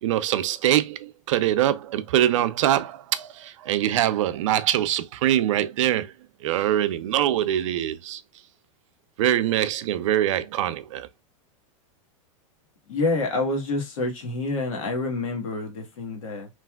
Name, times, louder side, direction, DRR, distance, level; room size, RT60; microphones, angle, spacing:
voice 1, 0.0-6.1 6.4-8.2 9.2-11.1, right 12 dB, 70° right, 0.4 m, -23 dB
voice 2, 12.9-16.5, left 2 dB, 80° left, 1.4 m, -27 dB
3.2 x 2.5 x 2.3 m
supercardioid pair, 160°, 17 cm